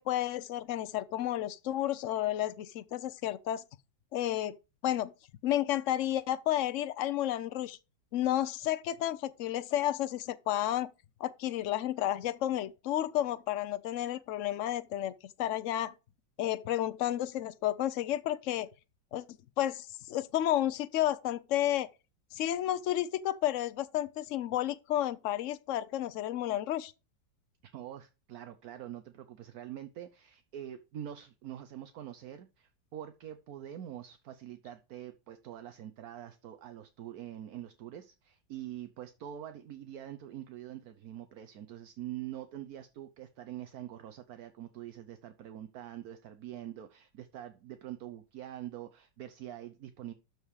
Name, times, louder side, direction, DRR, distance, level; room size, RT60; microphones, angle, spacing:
voice 1, 0.0-3.6 4.1-4.6 4.8-5.1 5.4-7.8 8.1-10.9 11.2-15.1 15.4-15.9 16.4-18.7 19.1-19.2 19.6-21.9 22.3-26.9, left 12 dB, 80° left, 0.6 m, -31 dB
voice 2, 27.6-50.1, right 11 dB, 60° right, 1.2 m, -45 dB
12.5 x 4.8 x 4.8 m
omnidirectional pair, 2.0 m